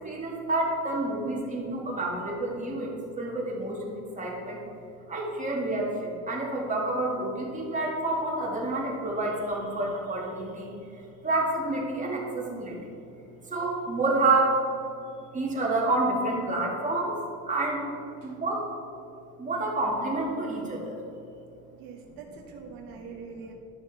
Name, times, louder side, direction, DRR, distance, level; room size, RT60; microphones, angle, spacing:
voice 1, 0.0-2.9 3.2-4.6 5.1-10.7 11.2-12.8 13.5-14.5 15.3-17.1 17.5-17.8 18.2-18.7 19.4-20.9, right 2 dB, 20° right, -3 dB, 2.1 m, -28 dB
voice 2, 21.7-23.5, right 5 dB, 85° right, 1 dB, 1.2 m, -44 dB
11.5 x 6.2 x 4.2 m, 2.7 s
cardioid pair, 120°, 34 cm